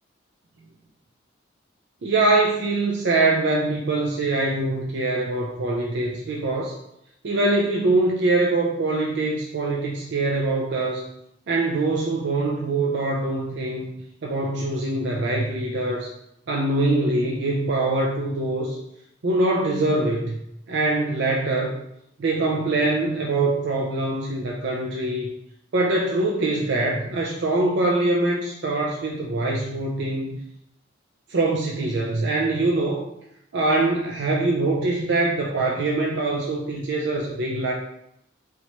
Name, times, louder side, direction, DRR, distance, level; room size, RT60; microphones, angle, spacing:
voice 1, 2.0-6.8 7.2-11.0 11.5-13.9 14.2-16.1 16.5-18.8 19.2-20.4 20.7-21.8 22.2-25.3 25.7-30.3 31.3-33.1 33.5-37.7, right 2 dB, 60° right, -2 dB, 0.4 m, -23 dB
3.0 x 3.0 x 2.9 m, 0.78 s
head